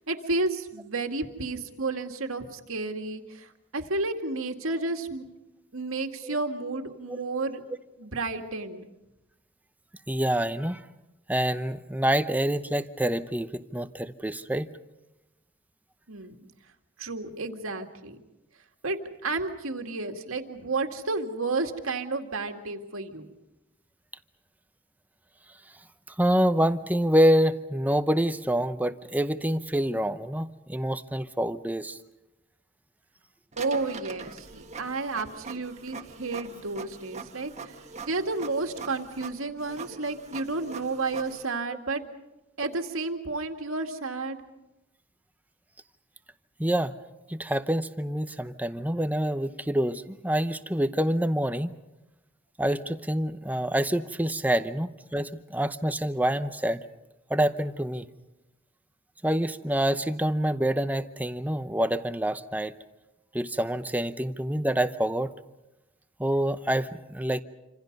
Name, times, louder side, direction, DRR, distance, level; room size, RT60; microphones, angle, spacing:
voice 1, 0.0-5.2 5.7-7.6 8.0-8.9 16.1-16.5 17.0-18.2 18.8-23.3 33.6-37.8 38.0-42.0 42.6-44.4, right 3 dB, 80° right, 5 dB, 2.2 m, -31 dB
voice 2, 10.1-10.9 11.3-14.7 26.2-32.0 46.6-46.9 47.3-51.7 52.6-56.8 57.3-58.1 59.2-62.7 63.3-65.3 66.2-67.4, equal, 10° right, 11 dB, 0.8 m, -26 dB
Printer, 33.5-41.4, right 4 dB, 30° right, 1.4 m, -43 dB
27.5 x 26.5 x 5.4 m, 0.97 s
head